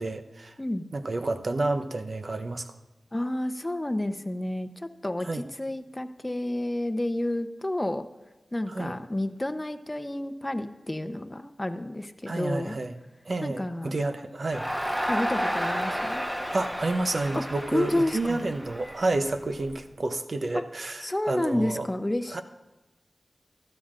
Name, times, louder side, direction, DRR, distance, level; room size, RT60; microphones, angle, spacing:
voice 1, 0.0-0.5 0.9-2.6 5.2-5.4 8.7-9.0 12.3-12.9 13.3-14.7 16.5-21.9 22.3-22.4, right 2 dB, 60° right, 8 dB, 0.8 m, -30 dB
voice 2, 3.1-4.7 5.0-8.1 8.5-12.7 13.4-14.3 15.1-16.2 17.3-17.4 17.7-18.4 20.5-20.6 21.0-22.4, left 1 dB, 25° left, 8 dB, 0.7 m, -30 dB
Crowd, 14.5-19.7, equal, 15° right, 1.2 m, -31 dB
13.5 x 13.0 x 2.5 m, 1.1 s
cardioid pair, 45°, 0 cm